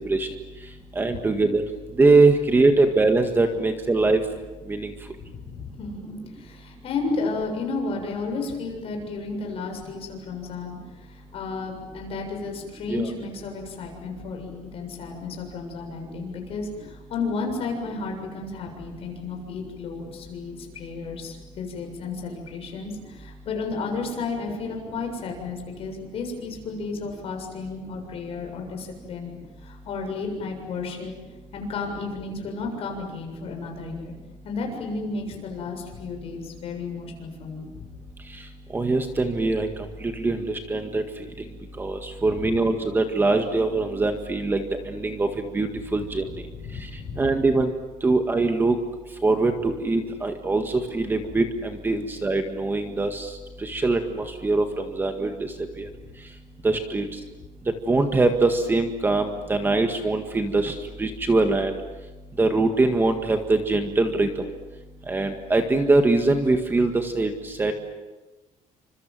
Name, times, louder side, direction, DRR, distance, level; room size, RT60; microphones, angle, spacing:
voice 1, 1.0-1.6 2.0-4.2 4.7-4.9 12.9-13.1 38.7-39.7 40.0-41.0 41.8-44.6 44.9-45.3 45.5-46.2 47.2-47.7 48.0-48.8 49.2-53.3 53.6-54.6 55.0-55.5 55.8-55.9 56.6-57.1 57.9-61.8 62.4-64.3 65.1-67.7, right 3 dB, 15° right, 6 dB, 1.7 m, -22 dB
voice 2, 5.2-31.1 31.5-34.1 34.4-37.9 42.4-42.6 46.0-47.4, left 4 dB, 45° left, 2 dB, 7.2 m, -33 dB
29.5 x 26.0 x 7.8 m, 1.1 s
cardioid pair, 175°, 13 cm